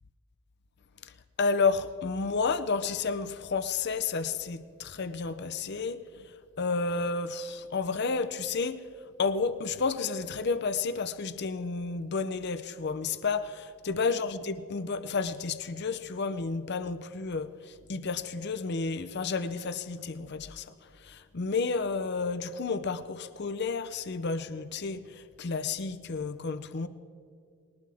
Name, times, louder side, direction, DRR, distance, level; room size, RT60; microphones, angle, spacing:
voice 1, 1.4-6.0 6.6-8.8 9.2-17.5 17.9-20.7 21.1-25.0 25.4-26.9, left 4 dB, 55° left, 0.7 m, -31 dB
21.0 x 19.5 x 3.5 m
head